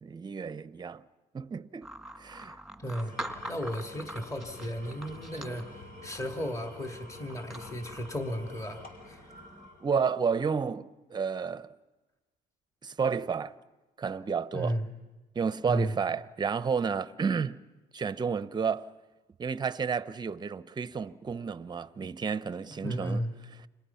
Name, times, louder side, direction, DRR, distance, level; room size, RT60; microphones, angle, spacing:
voice 1, 0.0-1.0 1.3-1.9 2.2-2.6 5.4-5.6 9.8-11.7 12.8-13.5 14.0-14.8 15.3-17.6 17.9-18.9 19.4-23.2 23.5-23.7, right 6 dB, 25° right, 0.8 m, -31 dB
sound 1, 1.8-9.7, right 1 dB, ahead, 1.8 m, -45 dB
voice 2, 2.8-3.1 3.4-5.6 6.0-9.2 14.5-14.9 15.7-15.9 22.6-23.3, equal, 20° left, 2.2 m, -34 dB
Engine / Tools, 2.9-10.3, left 2 dB, 65° left, 5.5 m, -49 dB
30.0 x 26.5 x 5.8 m
cardioid pair, 110°, 17 cm